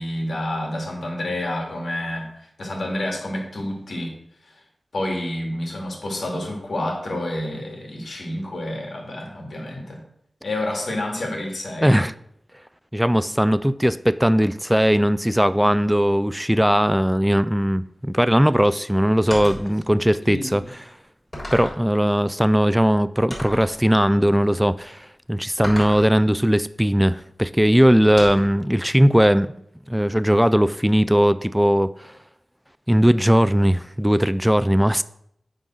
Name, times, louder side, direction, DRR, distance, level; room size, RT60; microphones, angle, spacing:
voice 1, 0.0-4.1 4.5-4.6 4.9-10.0 10.4-12.0 20.2-20.7, left 1 dB, 70° left, 2.3 m, -29 dB
voice 2, 11.8-12.1 12.9-20.6 21.5-29.5 29.9-32.1 32.9-35.0, equal, 5° right, 0.3 m, -19 dB
sound 1, 19.3-19.7 20.5-20.6 21.3-21.9 23.3-23.8 25.6-26.1 28.2-28.6, left 1 dB, 30° left, 3.6 m, -33 dB
9.1 x 3.8 x 6.2 m
wide cardioid pair, 85°, 0 cm